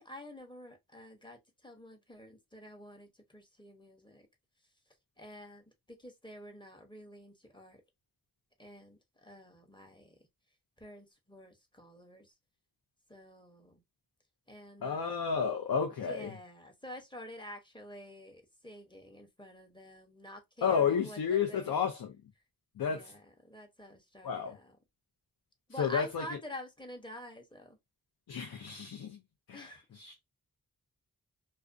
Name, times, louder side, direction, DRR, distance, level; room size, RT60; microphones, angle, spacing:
voice 1, 0.0-4.3 5.2-5.6 6.0-7.8 8.6-10.1 10.8-12.3 13.1-13.8 14.5-15.0 16.0-21.8 22.8-24.8 25.7-27.8 29.5-29.8, equal, 15° left, 0.7 m, -48 dB
voice 2, 14.8-16.3 20.6-22.1 22.8-23.1 24.2-24.6 25.8-26.2 28.3-29.2 29.5-30.1, left 7 dB, 80° left, 0.6 m, -31 dB
2.4 x 2.2 x 2.4 m
wide cardioid pair, 65°, 36 cm